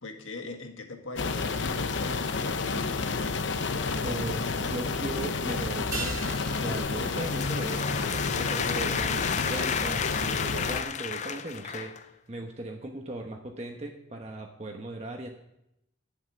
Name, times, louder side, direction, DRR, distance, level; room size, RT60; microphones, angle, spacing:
voice 1, 0.0-3.3, left 2 dB, 90° left, 4 dB, 1.8 m, -41 dB
sound 1, 1.2-10.8, left 4 dB, 70° left, 0.8 m, -30 dB
voice 2, 4.0-6.2 6.6-15.3, right 1 dB, 35° right, 2 dB, 1.0 m, -38 dB
sound 2, 5.9-10.6 10.9-11.0, right 3 dB, 20° right, 2.6 m, -43 dB
sound 3, 6.9-12.1, left 7 dB, 35° left, 0.4 m, -32 dB
11.0 x 8.1 x 8.2 m, 0.86 s
head